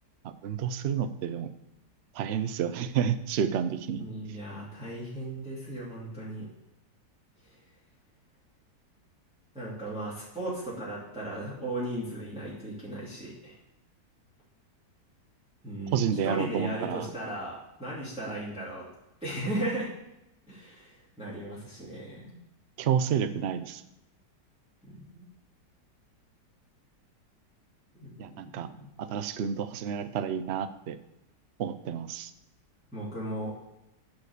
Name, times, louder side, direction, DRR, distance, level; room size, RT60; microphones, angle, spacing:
voice 1, 0.4-1.5 2.1-4.0 15.9-17.1 22.8-23.8 28.2-28.7 29.0-31.0 31.6-32.3, right 8 dB, 75° right, 11 dB, 0.5 m, -30 dB
voice 2, 4.0-6.5 7.4-7.5 9.5-13.6 15.6-18.9 19.2-19.9 20.5-22.3 24.9-25.3 27.9-28.1 28.8-28.9 32.9-33.5, right 1 dB, 5° right, -9 dB, 2.6 m, -36 dB
10.5 x 4.9 x 6.8 m, 0.89 s
omnidirectional pair, 1.9 m